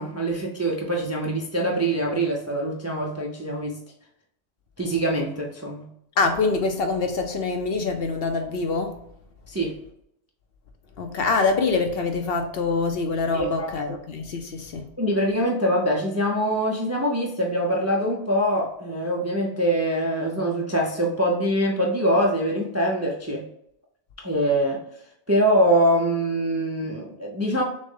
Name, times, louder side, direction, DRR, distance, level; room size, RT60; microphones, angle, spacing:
voice 1, 0.0-3.8 4.8-5.9 9.5-9.7 13.3-13.7 15.0-23.5 24.2-24.8 25.3-27.6, right 1 dB, 20° right, -1 dB, 0.4 m, -24 dB
voice 2, 6.2-8.9 11.0-14.9, left 4 dB, 60° left, 5 dB, 0.7 m, -25 dB
6.2 x 2.1 x 3.7 m, 0.75 s
omnidirectional pair, 1.2 m